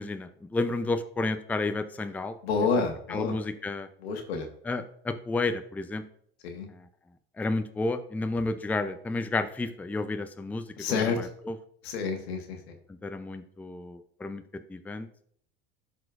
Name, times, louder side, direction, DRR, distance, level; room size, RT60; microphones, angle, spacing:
voice 1, 0.0-2.3 2.8-3.9 4.6-6.0 7.4-11.6 13.0-14.4 14.7-15.1, left 3 dB, 5° left, 9 dB, 0.4 m, -31 dB
voice 2, 2.4-3.3 4.0-4.5 6.4-6.7 10.8-11.2 11.8-12.7, left 5 dB, 85° left, 4 dB, 1.3 m, -29 dB
12.0 x 4.2 x 2.5 m, 0.63 s
supercardioid pair, 90°, 31 cm